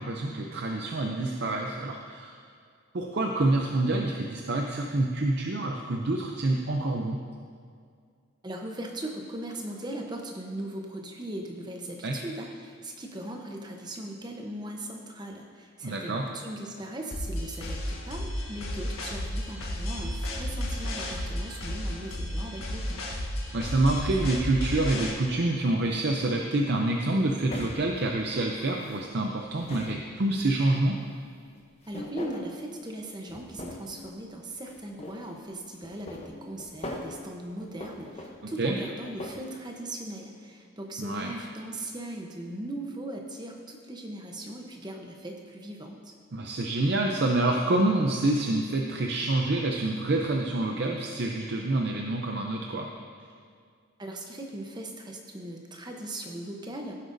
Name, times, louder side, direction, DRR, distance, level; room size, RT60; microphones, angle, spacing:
voice 1, 0.0-2.4 2.9-7.2 12.0-12.2 15.8-16.3 23.5-31.0 38.6-38.7 41.0-41.3 46.3-52.9, right 2 dB, 50° right, 1 dB, 0.5 m, -27 dB
voice 2, 8.4-23.0 31.9-46.1 54.0-56.9, right 1 dB, 20° right, 2 dB, 0.8 m, -39 dB
sound 1, 17.1-25.1, left 1 dB, 85° left, 1.5 m, -33 dB
sound 2, 25.9-26.1 27.5-29.0 29.4-30.5 31.6-32.6 33.3-34.1 34.6-35.3 35.8-37.2 37.6-39.4, left 1 dB, 30° left, 0.8 m, -41 dB
15.0 x 7.8 x 2.6 m, 2.2 s
head